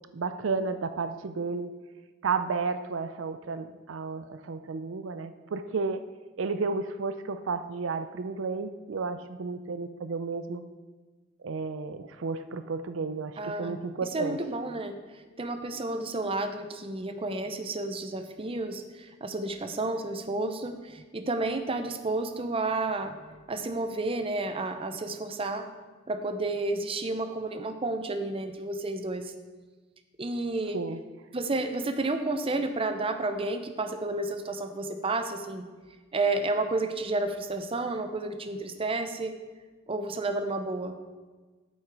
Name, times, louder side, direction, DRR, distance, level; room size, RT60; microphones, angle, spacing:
voice 1, 0.1-1.7 2.2-6.0 6.4-10.6 11.4-14.4 30.7-31.0, right 4 dB, 85° right, 11 dB, 0.5 m, -32 dB
voice 2, 13.4-15.0 15.4-23.2 23.5-25.7 26.1-29.3 30.2-30.8 31.3-35.6 36.1-39.4 39.9-40.9, right 2 dB, 30° right, 8 dB, 0.6 m, -31 dB
8.6 x 7.9 x 4.7 m, 1.3 s
head